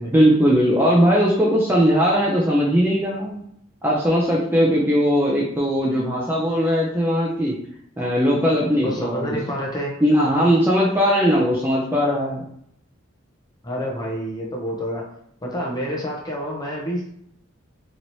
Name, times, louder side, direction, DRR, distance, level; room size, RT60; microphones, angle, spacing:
voice 1, 0.1-3.4 3.8-7.5 8.0-9.4 10.0-12.4, equal, 10° right, -4 dB, 0.4 m, -19 dB
voice 2, 8.8-9.9 13.6-15.1 15.4-17.1, equal, 20° left, -2 dB, 0.7 m, -28 dB
3.0 x 2.9 x 2.7 m, 0.71 s
head